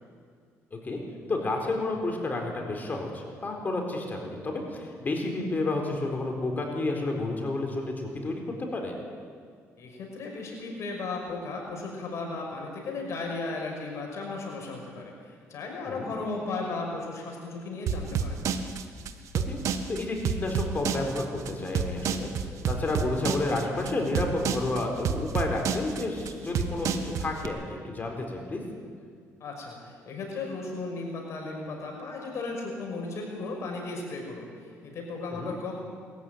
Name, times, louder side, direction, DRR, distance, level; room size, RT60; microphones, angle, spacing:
voice 1, 0.7-1.0 1.3-9.0 15.9-16.1 19.3-19.6 19.9-28.6 35.3-35.5, left 2 dB, 30° left, 2 dB, 4.3 m, -31 dB
voice 2, 9.8-18.4 29.4-35.7, left 3 dB, 60° left, 0 dB, 5.7 m, -35 dB
sound 1, 17.9-27.5, right 7 dB, 65° right, 1.5 m, -29 dB
21.5 x 14.0 x 9.3 m, 2.1 s
cardioid pair, 90°, 6 cm